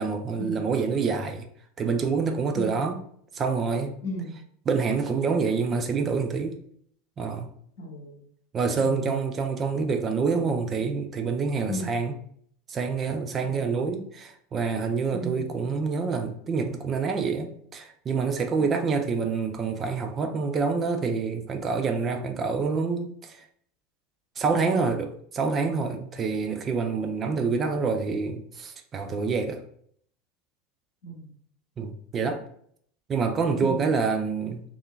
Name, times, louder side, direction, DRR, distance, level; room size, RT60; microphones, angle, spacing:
voice 1, 0.0-1.5 1.8-3.0 3.3-3.9 4.7-6.6 7.2-7.5 8.5-12.1 12.7-23.5 24.4-29.6 31.8-32.4 33.1-34.6, right 5 dB, 30° right, 0.3 m, -27 dB
voice 2, 4.0-4.3 7.8-8.2 8.8-9.2 11.7-11.9 13.4-13.7 15.1-15.6 18.6-18.7 31.0-31.3 33.6-33.8, equal, 60° left, 0.8 m, -35 dB
2.6 x 2.4 x 2.3 m
figure-of-eight pair, 80°, 0 cm